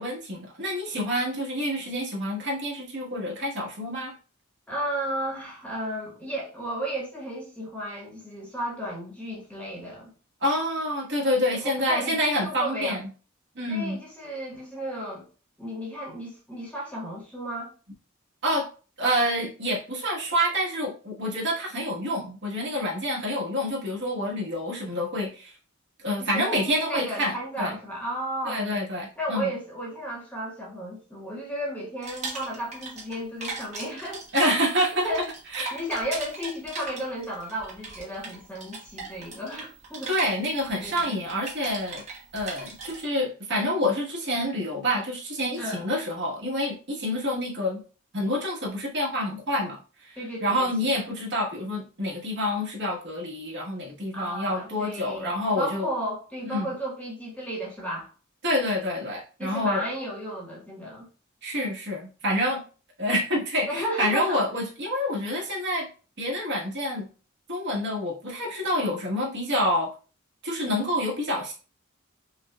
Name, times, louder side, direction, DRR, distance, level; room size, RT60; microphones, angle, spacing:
voice 1, 0.0-4.1 10.4-13.0 13.5-14.0 18.4-18.7 19.0-25.5 26.0-27.8 28.4-29.5 34.3-35.1 35.5-35.8 40.1-42.0 42.3-47.8 48.1-55.9 56.4-56.7 58.4-59.8 61.4-62.6 63.0-65.9 66.2-67.1 67.5-69.9 70.4-71.5, equal, 60° right, 1.3 m, -27 dB
voice 2, 4.7-10.1 11.5-13.0 13.7-15.3 15.6-17.7 26.2-28.6 29.2-34.2 35.0-35.2 35.7-40.1 40.8-41.1 45.6-45.8 50.2-51.1 54.1-58.1 59.4-61.1 63.7-64.4, equal, 5° left, 1.0 m, -33 dB
sound 1, 32.0-33.2 33.4-43.0, right 3 dB, 35° right, 1.1 m, -38 dB
5.4 x 2.2 x 2.2 m
head